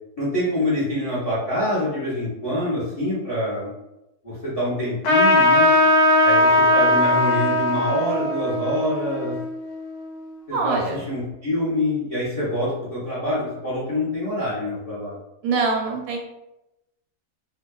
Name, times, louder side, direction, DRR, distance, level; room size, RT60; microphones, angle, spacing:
voice 1, 0.2-3.7 4.2-5.7 6.2-9.3 10.5-15.1, left 1 dB, 35° left, -9 dB, 0.6 m, -26 dB
Trumpet, 5.0-10.0, left 1 dB, 80° left, 1.1 m, -19 dB
voice 2, 10.5-11.0 15.4-16.2, right 4 dB, 80° right, 1 dB, 1.1 m, -23 dB
2.7 x 2.2 x 2.2 m, 0.91 s
omnidirectional pair, 1.7 m